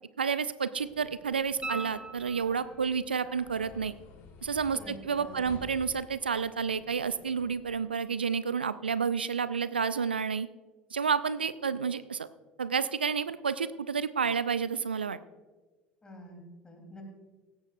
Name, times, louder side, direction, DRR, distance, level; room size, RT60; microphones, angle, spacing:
voice 1, 0.2-3.9 4.4-10.5 10.9-12.3 12.6-15.2, right 6 dB, 80° right, 16 dB, 0.4 m, -30 dB
sound 1, 0.8-7.8, left 4 dB, 50° left, 2.1 m, -52 dB
sound 2, 1.6-2.9 5.7-5.8, right 3 dB, 15° right, 0.9 m, -40 dB
voice 2, 4.7-5.4 16.0-17.0, left 1 dB, 15° left, 2 dB, 3.5 m, -47 dB
17.0 x 13.5 x 2.6 m, 1.3 s
figure-of-eight pair, 70°, 5 cm